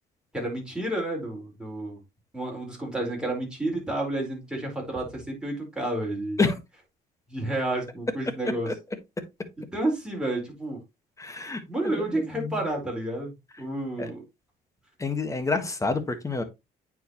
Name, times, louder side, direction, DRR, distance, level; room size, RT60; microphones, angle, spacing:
voice 1, 0.3-2.0 2.3-6.4 7.3-8.7 9.7-10.8 11.7-14.2, right 1 dB, 5° right, 4.3 m, -30 dB
voice 2, 11.2-12.6 14.0-14.1 15.0-16.4, left 3 dB, 20° left, 1.4 m, -28 dB
9.0 x 4.9 x 3.0 m
cardioid pair, 110°, 17 cm